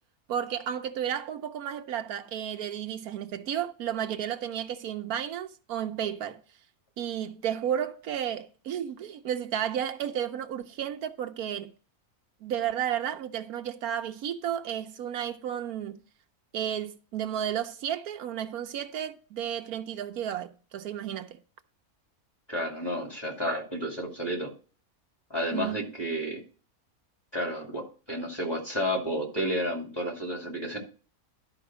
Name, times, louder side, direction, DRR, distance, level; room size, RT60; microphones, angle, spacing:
voice 1, 0.3-6.4 7.0-11.7 12.4-16.0 16.5-21.4 25.5-25.8, right 9 dB, 80° right, 1.2 m, -32 dB
voice 2, 22.5-24.5 25.3-26.4 27.3-30.8, equal, 15° left, 2.4 m, -31 dB
11.5 x 4.9 x 6.0 m
omnidirectional pair, 1.6 m